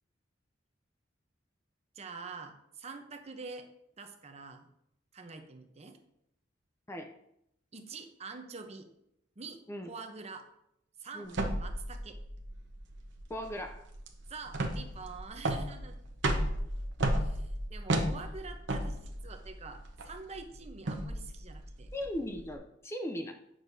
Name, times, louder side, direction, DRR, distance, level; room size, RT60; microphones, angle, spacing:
voice 1, 1.9-3.7 4.0-4.7 5.1-6.0 7.7-8.9 9.4-9.6 9.9-10.5 11.0-11.3 11.5-12.2 14.3-16.0 17.3-21.9, right 4 dB, 35° right, 6 dB, 0.7 m, -46 dB
sound 1, 11.3-22.5, right 1 dB, 65° right, 0.9 m, -34 dB
voice 2, 13.3-13.9 21.9-23.3, equal, 15° left, 5 dB, 0.4 m, -38 dB
9.2 x 6.3 x 2.7 m, 0.78 s
head